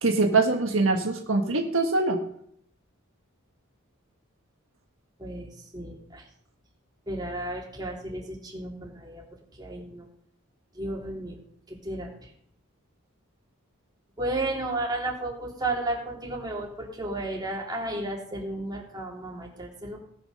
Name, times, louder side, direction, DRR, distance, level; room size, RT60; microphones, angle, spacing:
voice 1, 0.0-2.2, right 3 dB, 65° right, 2 dB, 1.5 m, -23 dB
voice 2, 5.2-6.2 7.1-10.1 10.7-11.4 11.7-12.3 14.2-20.0, right 2 dB, 20° right, -2 dB, 3.1 m, -33 dB
18.0 x 6.3 x 6.4 m, 0.66 s
head